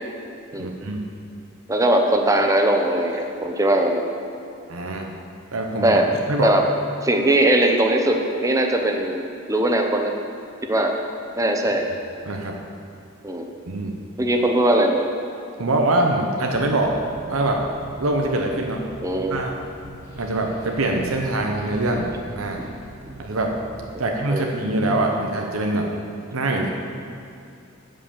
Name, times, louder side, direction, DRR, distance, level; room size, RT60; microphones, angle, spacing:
voice 1, 0.6-1.0 4.7-5.1 5.5-6.0 6.3-6.5 12.3-12.6 13.7-13.9 15.6-16.9 17.3-17.6 18.0-18.9 19.3-19.6 20.1-22.6 23.2-23.5 24.0-25.9 26.3-26.7, right 2 dB, 85° right, 1 dB, 0.9 m, -23 dB
voice 2, 1.7-4.0 5.8-6.1 6.4-6.6 7.0-9.2 9.5-10.1 10.6-10.9 11.4-11.9 13.2-13.5 14.2-15.0 19.0-19.4 23.9-24.0 24.3-24.5, right 1 dB, 15° right, 3 dB, 0.7 m, -20 dB
sound 1, 16.5-24.0, right 1 dB, 15° left, 1.9 m, -43 dB
9.9 x 5.6 x 7.1 m, 2.5 s
head